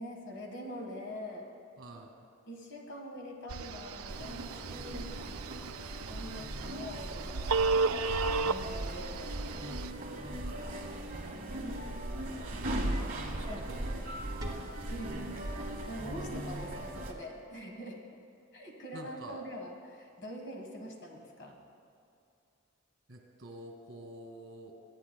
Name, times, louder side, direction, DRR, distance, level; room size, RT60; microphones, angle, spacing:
voice 1, 0.0-1.5 2.5-5.3 6.1-7.6 8.4-9.8 11.1-12.0 13.5-13.6 14.9-15.4 15.9-18.0 18.5-21.6, equal, 55° left, 2 dB, 1.4 m, -44 dB
voice 2, 1.8-2.1 4.7-5.1 5.4-5.6 10.4-10.6 13.3-14.0 14.4-14.6 18.9-19.4 23.1-24.7, right 1 dB, 60° right, 0 dB, 1.8 m, -48 dB
Telephone, 3.5-9.9, right 4 dB, 85° right, 0.4 m, -34 dB
sound 1, 4.1-17.1, right 1 dB, 40° right, 1.1 m, -38 dB
sound 2, 14.4-17.2, equal, 20° right, 1.2 m, -51 dB
25.0 x 8.8 x 2.2 m, 2.5 s
head